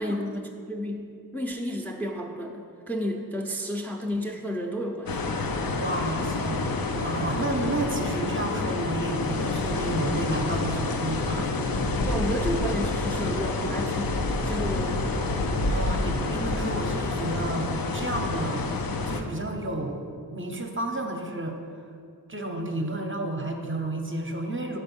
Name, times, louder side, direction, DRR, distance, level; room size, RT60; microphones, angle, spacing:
voice 1, 0.0-5.2 12.0-15.1, equal, 5° left, 2 dB, 0.5 m, -32 dB
sound 1, 5.1-19.2, left 3 dB, 65° left, 0.6 m, -28 dB
voice 2, 5.8-11.5 15.7-18.7 19.0-21.6 22.3-24.8, right 1 dB, 35° right, 3 dB, 0.6 m, -31 dB
5.5 x 4.3 x 5.3 m, 2.3 s
wide cardioid pair, 55°, 38 cm